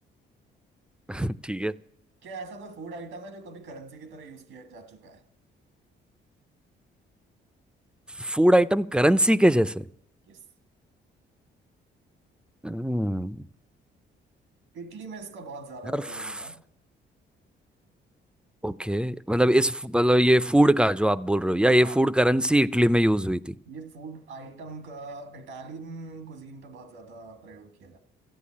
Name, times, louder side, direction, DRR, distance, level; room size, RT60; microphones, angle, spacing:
voice 1, 1.1-1.8 8.2-9.8 12.6-13.4 15.9-16.0 18.6-23.5, right 1 dB, 5° right, 0.4 m, -22 dB
voice 2, 2.2-5.2 10.3-10.4 14.7-16.6 21.8-22.1 23.6-28.0, right 3 dB, 85° right, 1.5 m, -42 dB
13.5 x 9.6 x 8.5 m
cardioid pair, 90°, 20 cm